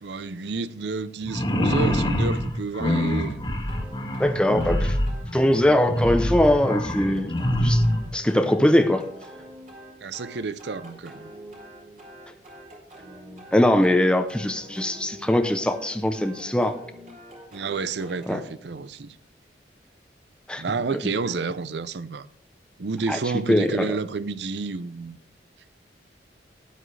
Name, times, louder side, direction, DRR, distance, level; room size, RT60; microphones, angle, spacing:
voice 1, 0.0-3.4 10.0-11.3 17.5-19.1 20.6-22.3 22.8-25.2, right 4 dB, 75° right, 0.6 m, -30 dB
sound 1, 1.2-8.1, equal, 25° left, 1.6 m, -25 dB
sound 2, 3.7-18.4, right 1 dB, 45° right, 3.2 m, -45 dB
voice 2, 4.2-5.0 5.3-7.3 7.6-7.8 8.1-9.1 13.5-16.7 18.3-18.4 20.5-20.6 23.1-23.2 23.5-23.9, left 1 dB, 5° left, 0.6 m, -21 dB
12.5 x 10.0 x 3.3 m
head